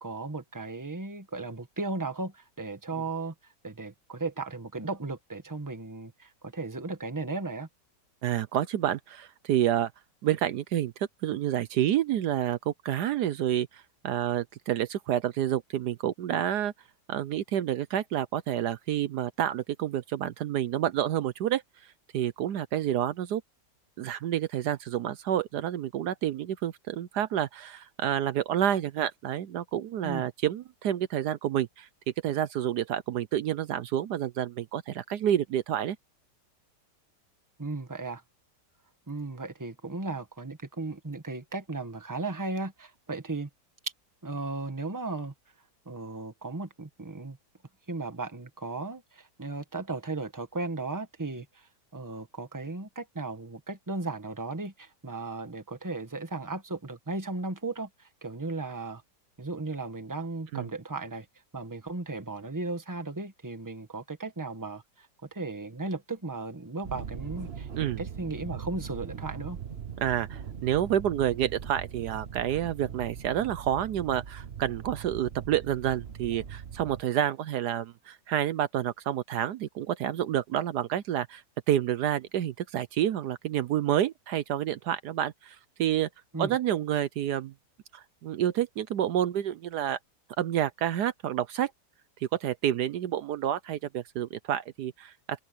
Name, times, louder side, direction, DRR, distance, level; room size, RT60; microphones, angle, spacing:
voice 1, 0.0-3.3 3.6-7.7 30.0-30.3 37.6-38.2 39.1-43.5 43.8-43.9 44.2-45.3 45.8-47.4 47.9-51.7 51.9-59.0 59.4-61.2 61.5-69.6 86.3-86.5, right 3 dB, 10° right, 1.4 m, -36 dB
voice 2, 8.2-9.9 10.2-10.9 11.2-16.7 17.1-21.6 22.1-23.4 24.0-31.9 32.2-36.0 60.5-60.7 67.8-68.0 70.0-81.4 81.7-86.1 86.4-87.5 87.9-90.0 90.4-91.7 92.3-95.4, right 11 dB, 75° right, 1.3 m, -29 dB
sound 1, 66.8-77.0, right 7 dB, 45° right, 1.1 m, -41 dB
omnidirectional pair, 1.8 m